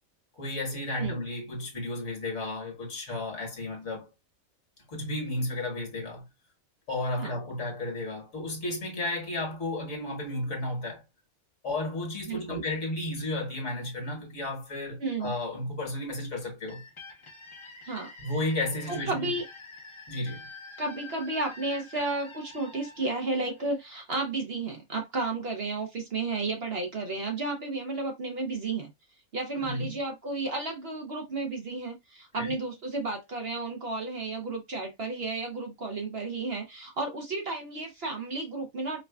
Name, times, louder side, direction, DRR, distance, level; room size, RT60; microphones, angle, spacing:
voice 1, 0.4-4.1 4.9-6.2 6.9-11.0 11.6-16.8 18.2-19.3 20.1-20.4 29.6-30.0 32.4-32.5, left 2 dB, 55° left, 1.6 m, -33 dB
voice 2, 12.3-12.6 15.0-15.3 17.8-18.1 18.9-19.4 20.8-28.9 29.3-39.0, right 3 dB, 50° right, 0.9 m, -32 dB
sound 1, 16.7-24.3, left 3 dB, 30° left, 0.6 m, -47 dB
4.7 x 2.2 x 2.3 m
omnidirectional pair, 1.5 m